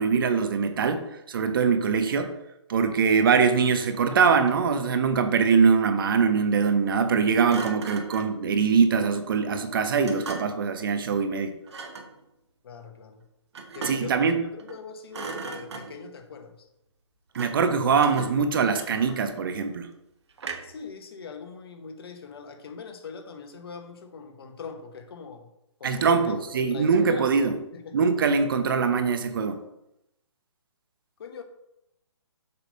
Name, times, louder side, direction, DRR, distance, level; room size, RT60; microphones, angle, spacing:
voice 1, 0.0-2.3 2.7-11.5 13.8-14.4 17.3-19.9 25.8-27.6 27.9-29.6, right 5 dB, 45° right, 0.7 m, -23 dB
Thump thud, 3.9-4.8 7.5-8.4 10.1-10.7 11.7-12.1 13.5-14.2 14.6-14.8 15.1-16.1 17.3-17.7 18.0-19.4 20.4-20.9, right 4 dB, 60° right, 1.1 m, -38 dB
voice 2, 12.6-13.3 13.7-16.6 20.6-25.5 25.8-27.4 27.7-28.1 31.2-31.4, left 5 dB, 55° left, 1.1 m, -41 dB
6.9 x 3.3 x 5.2 m
hypercardioid pair, 155°, 16 cm